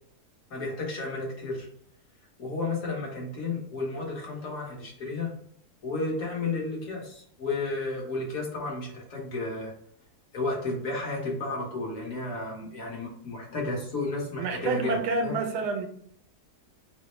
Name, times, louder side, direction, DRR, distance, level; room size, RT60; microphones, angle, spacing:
voice 1, 0.5-1.7 2.4-5.3 5.8-9.7 10.3-15.4, left 3 dB, 60° left, -2 dB, 1.5 m, -32 dB
voice 2, 14.4-15.9, right 3 dB, 90° right, 5 dB, 1.2 m, -28 dB
4.0 x 2.1 x 4.2 m, 0.63 s
omnidirectional pair, 1.7 m